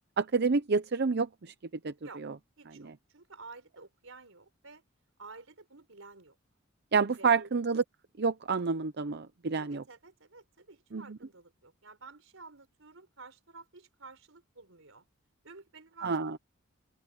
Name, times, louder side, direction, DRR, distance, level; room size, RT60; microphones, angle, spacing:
voice 1, 0.2-1.5 1.8-1.9 2.2-2.3 2.8-2.9 6.9-7.8 8.2-9.8 10.9-11.2 16.0-16.4, right 4 dB, 55° right, 0.7 m, -28 dB
voice 2, 2.6-4.8 5.2-6.4 7.2-7.6 9.5-15.0 15.4-16.2, right 3 dB, 85° right, 4.5 m, -51 dB
open air
head